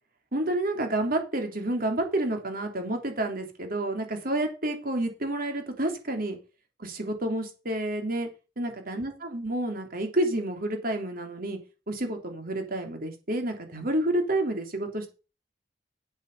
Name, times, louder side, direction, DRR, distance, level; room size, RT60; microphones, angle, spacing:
voice 1, 0.3-6.4 6.8-8.3 8.6-11.6 11.9-15.1, right 1 dB, 55° right, 4 dB, 3.4 m, -29 dB
9.6 x 8.3 x 5.5 m, 0.31 s
head